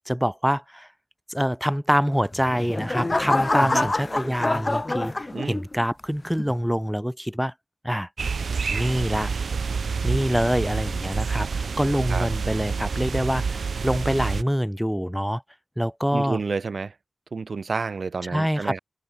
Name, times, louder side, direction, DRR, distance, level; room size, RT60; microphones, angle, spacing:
voice 1, 0.1-0.9 1.3-7.5 7.8-8.1 8.7-9.3 10.0-15.4 15.8-16.4 18.2-18.7, equal, ahead, 1.2 m, -25 dB
sound 1, 2.2-5.8 6.4-6.7, left 2 dB, 35° left, 0.8 m, -26 dB
voice 2, 3.6-3.9 5.3-5.6 12.1-12.3 16.1-16.9 17.3-18.8, right 4 dB, 70° right, 2.0 m, -29 dB
sound 2, 8.2-14.4, right 5 dB, 90° right, 4.3 m, -28 dB
wide cardioid pair, 70°, 0 cm